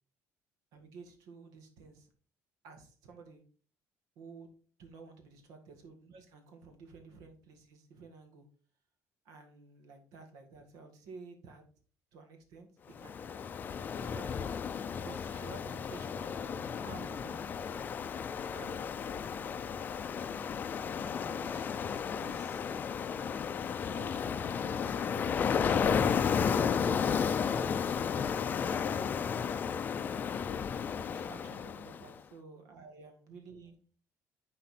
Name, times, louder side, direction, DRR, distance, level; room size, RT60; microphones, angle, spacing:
voice 1, 0.7-2.1 2.6-3.4 4.2-4.5 4.8-8.5 9.3-11.6 12.1-13.4 13.9-17.7 18.5-19.7 20.8-21.7 22.2-22.6 23.8-26.0 27.3-28.4 31.1-33.8, right 4 dB, 90° right, 5 dB, 1.9 m, -52 dB
Ocean, 13.0-32.1, left 7 dB, 30° left, 0.4 m, -33 dB
10.0 x 4.2 x 4.3 m, 0.41 s
cardioid pair, 145°, 6 cm